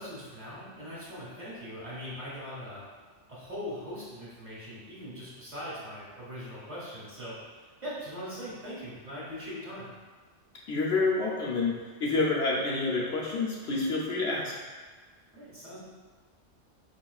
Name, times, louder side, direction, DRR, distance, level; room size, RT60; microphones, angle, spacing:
voice 1, 0.0-2.9 3.3-9.9 15.3-15.8, equal, 40° right, -9 dB, 1.4 m, -41 dB
voice 2, 10.7-11.7 12.0-14.5, left 3 dB, 70° left, -5 dB, 0.9 m, -28 dB
5.0 x 3.0 x 2.3 m, 1.4 s
omnidirectional pair, 1.2 m